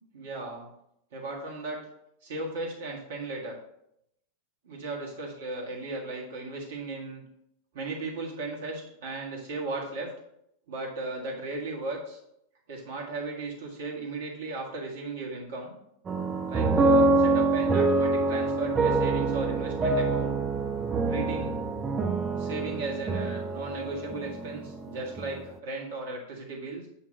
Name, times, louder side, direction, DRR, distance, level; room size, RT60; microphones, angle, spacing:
voice 1, 0.1-0.7 1.1-1.8 2.2-3.6 4.6-7.2 7.7-10.1 10.7-12.2 12.7-15.7 16.5-20.3 21.1-21.6 22.4-26.9, right 2 dB, 60° right, -2 dB, 1.9 m, -36 dB
sound 1, 16.1-25.4, right 3 dB, 20° right, 0.7 m, -26 dB
8.7 x 2.9 x 5.4 m, 0.77 s
figure-of-eight pair, 90°, 0 cm